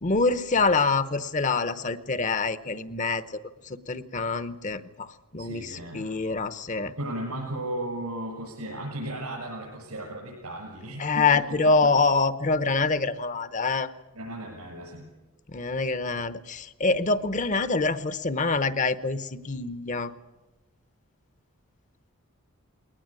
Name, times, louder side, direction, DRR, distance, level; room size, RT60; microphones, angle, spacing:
voice 1, 0.0-5.1 5.3-6.9 11.0-13.9 15.5-20.1, left 3 dB, 35° left, 13 dB, 0.9 m, -25 dB
voice 2, 5.4-6.1 7.0-11.9 14.1-15.1, right 1 dB, 85° right, -3 dB, 7.1 m, -35 dB
21.5 x 19.0 x 9.0 m, 1.1 s
head